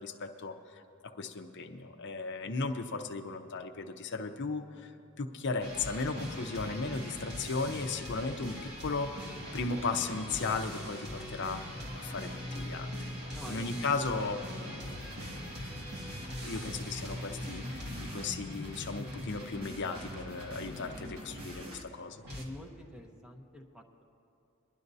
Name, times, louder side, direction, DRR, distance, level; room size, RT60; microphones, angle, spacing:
voice 1, 0.0-4.9 5.2-9.1 9.5-12.9 13.4-15.5 16.4-22.2, left 4 dB, 55° left, 4 dB, 0.7 m, -36 dB
sound 1, 5.6-22.4, equal, 50° right, 1.7 m, -42 dB
voice 2, 13.3-13.7 22.3-24.0, left 1 dB, 5° right, 0 dB, 0.9 m, -47 dB
sound 2, 14.9-21.8, equal, 70° right, 1.3 m, -47 dB
23.5 x 11.0 x 2.7 m, 2.7 s
head